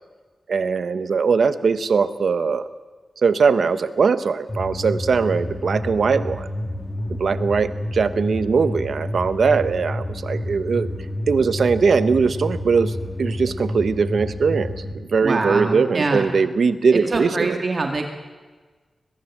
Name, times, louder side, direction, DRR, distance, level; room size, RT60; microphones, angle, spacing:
voice 1, 0.5-2.7 3.2-6.5 7.2-10.9 11.3-17.6, right 5 dB, 70° right, 12 dB, 1.1 m, -20 dB
sound 1, 4.5-14.9, left 1 dB, 25° left, 2.2 m, -29 dB
voice 2, 15.2-16.3 16.9-18.1, right 3 dB, 45° right, 4 dB, 2.1 m, -24 dB
22.5 x 21.0 x 7.4 m, 1.4 s
wide cardioid pair, 105°, 0 cm